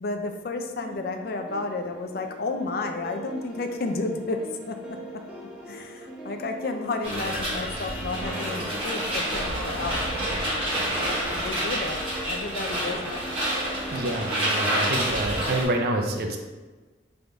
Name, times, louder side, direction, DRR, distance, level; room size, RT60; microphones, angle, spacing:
voice 1, 0.0-5.2 5.7-10.2 11.3-13.2, left 3 dB, 55° left, 5 dB, 0.4 m, -32 dB
sound 1, 0.8-14.9, right 1 dB, 5° right, 0.6 m, -42 dB
sound 2, 7.0-15.6, right 1 dB, 30° right, 1.1 m, -28 dB
voice 2, 13.9-16.4, right 1 dB, 55° right, 3 dB, 0.5 m, -27 dB
3.5 x 2.6 x 4.5 m, 1.2 s
head